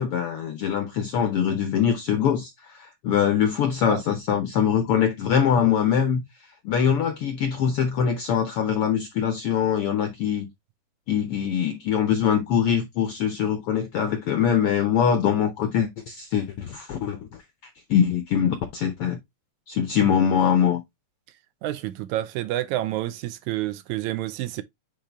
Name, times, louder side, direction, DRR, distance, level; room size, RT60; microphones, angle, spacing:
voice 1, 0.0-6.2 6.6-10.5 11.1-17.2 17.9-19.2 19.7-20.8, left 8 dB, 75° left, 1.3 m, -23 dB
voice 2, 21.6-24.6, right 14 dB, 80° right, 1.9 m, -29 dB
8.5 x 3.4 x 3.3 m
omnidirectional pair, 3.5 m